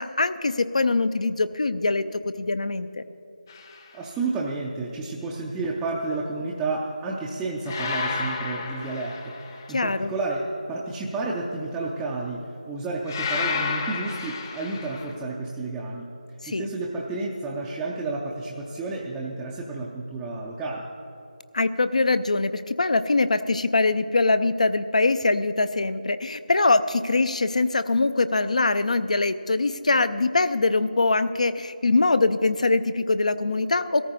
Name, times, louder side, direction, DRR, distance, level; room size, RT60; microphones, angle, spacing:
voice 1, 0.0-3.0 9.7-10.1 16.4-16.7 21.5-34.0, left 3 dB, 55° left, 13 dB, 0.5 m, -23 dB
sound 1, 3.5-3.8 7.7-9.8 13.1-15.1, left 4 dB, 25° left, 0.8 m, -31 dB
voice 2, 3.9-9.3 9.7-16.1 16.5-20.8, right 3 dB, 5° right, -5 dB, 0.5 m, -31 dB
16.5 x 14.0 x 4.0 m, 2.8 s
figure-of-eight pair, 160°, 5 cm